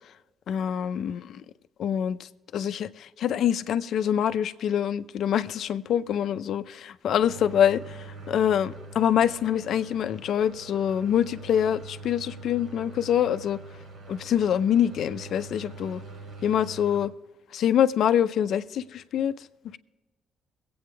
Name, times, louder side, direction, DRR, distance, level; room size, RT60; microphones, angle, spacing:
voice 1, 0.5-1.4 1.8-2.2 2.5-13.6 14.1-16.0 16.4-17.1 17.5-19.3, left 9 dB, 70° left, 0.6 m, -25 dB
sound 1, 7.2-17.1, right 3 dB, 55° right, 3.1 m, -43 dB
22.5 x 8.6 x 3.4 m
cardioid pair, 90°, 0 cm